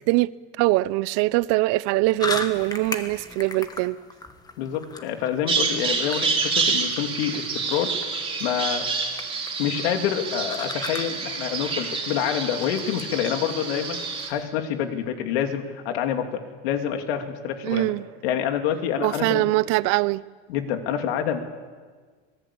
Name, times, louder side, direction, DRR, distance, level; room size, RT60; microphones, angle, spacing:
voice 1, 0.6-4.0 17.6-18.1 19.0-20.2, right 20 dB, 55° right, 0.7 m, -22 dB
sound 1, 2.2-14.4, left 3 dB, 15° left, 1.6 m, -38 dB
voice 2, 4.6-7.9 8.4-8.9 9.6-14.0 14.3-17.9 18.2-19.5 20.5-21.4, left 9 dB, 85° left, 3.1 m, -27 dB
Bird vocalization bird call bird song, 5.5-14.3, right 4 dB, 15° right, 3.2 m, -28 dB
26.0 x 19.5 x 8.7 m
cardioid pair, 150°, 30 cm